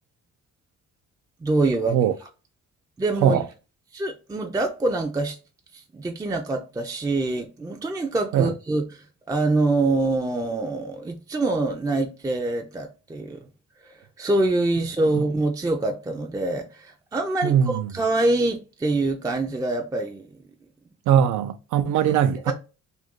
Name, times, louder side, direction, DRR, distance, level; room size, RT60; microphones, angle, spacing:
voice 1, 1.4-2.3 3.0-3.4 3.9-5.4 5.7-13.5 13.8-20.3 22.0-22.1 22.5-22.6, right 2 dB, 10° right, 0.4 m, -25 dB
voice 2, 17.4-17.9 21.1-22.5, right 9 dB, 75° right, 0.5 m, -20 dB
2.7 x 2.6 x 3.5 m
cardioid pair, 90°, 30 cm